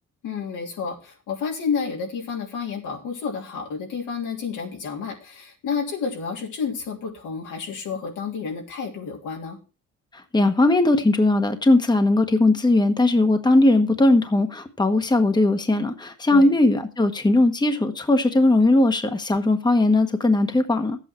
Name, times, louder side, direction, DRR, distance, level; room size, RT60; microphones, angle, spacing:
voice 1, 0.2-9.6 16.3-16.5, left 6 dB, 85° left, 3.2 m, -30 dB
voice 2, 10.3-21.0, left 2 dB, 15° left, 1.2 m, -19 dB
11.0 x 8.3 x 4.5 m
cardioid pair, 90°, 30 cm